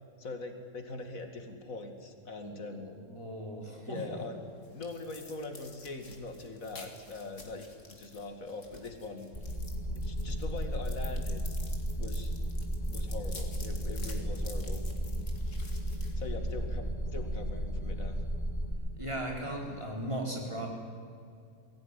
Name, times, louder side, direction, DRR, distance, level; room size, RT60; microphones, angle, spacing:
voice 1, 0.2-2.9 3.9-4.4 4.7-9.3 10.0-11.5 12.0-12.3 12.9-15.2 16.2-18.2, left 3 dB, 85° left, 6 dB, 2.7 m, -42 dB
voice 2, 2.4-4.2 19.0-20.7, right 1 dB, 20° right, 0 dB, 4.5 m, -38 dB
sound 1, 4.1-16.8, left 3 dB, 65° left, 2.9 m, -52 dB
sound 2, 9.3-18.7, equal, 35° left, 4.7 m, -34 dB
22.5 x 16.5 x 9.9 m, 2.3 s
omnidirectional pair, 1.4 m